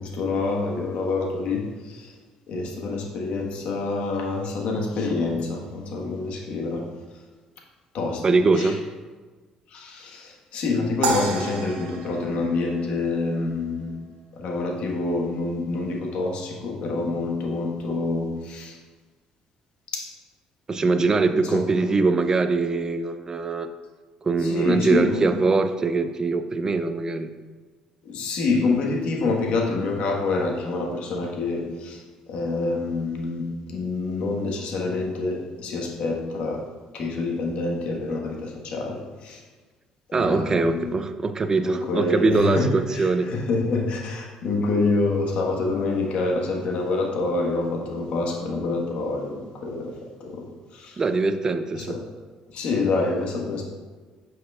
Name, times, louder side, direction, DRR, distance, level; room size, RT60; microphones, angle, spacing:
voice 1, 0.0-2.1 2.5-6.8 7.9-8.2 8.5-8.7 9.7-14.0 14.3-18.8 19.9-20.1 21.4-21.9 24.4-25.3 28.0-32.0 32.3-36.6 36.9-39.4 40.1-40.9 41.5-51.0 51.7-52.0 52.5-53.6, left 3 dB, 65° left, -1 dB, 1.4 m, -27 dB
voice 2, 8.2-8.8 20.7-23.7 24.2-27.3 40.1-43.3 51.0-52.0, right 3 dB, 30° right, 10 dB, 0.5 m, -22 dB
sound 1, 11.0-13.4, right 2 dB, 80° right, 0.9 m, -30 dB
7.6 x 6.1 x 2.4 m, 1.3 s
cardioid pair, 95°, 2 cm